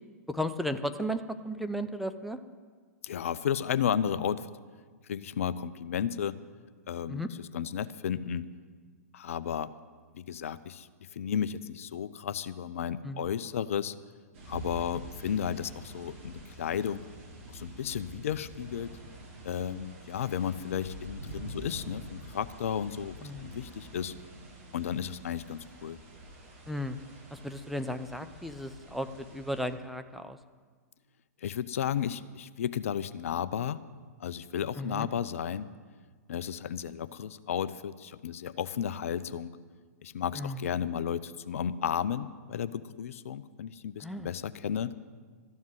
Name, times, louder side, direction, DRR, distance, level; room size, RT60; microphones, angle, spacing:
voice 1, 0.3-2.4 7.1-7.3 13.0-13.3 23.2-23.5 26.7-27.0 27.3-30.4 34.8-35.1 40.4-40.7 44.0-44.3, equal, ahead, 7 dB, 0.5 m, -35 dB
voice 2, 3.0-4.5 5.1-6.4 6.9-7.3 7.5-8.5 9.1-9.7 10.1-13.9 14.5-17.0 17.5-18.9 19.4-24.1 24.7-26.0 31.4-33.8 34.2-35.7 36.3-39.5 40.0-44.9, left 9 dB, 55° left, 15 dB, 0.5 m, -33 dB
sound 1, 14.3-29.7, right 1 dB, 45° right, 3.4 m, -47 dB
13.5 x 7.2 x 9.4 m, 1.6 s
figure-of-eight pair, 110°, 9 cm